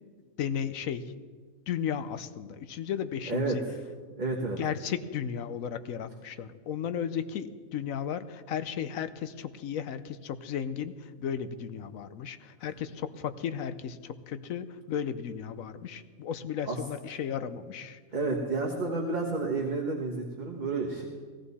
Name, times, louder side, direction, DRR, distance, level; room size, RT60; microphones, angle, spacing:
voice 1, 0.4-1.1 1.7-3.6 4.3-18.0, left 8 dB, 75° left, 12 dB, 1.1 m, -35 dB
voice 2, 4.2-4.6 16.6-16.8 18.1-21.0, right 3 dB, 35° right, -1 dB, 1.4 m, -30 dB
17.5 x 14.5 x 4.2 m, 1.5 s
omnidirectional pair, 1.5 m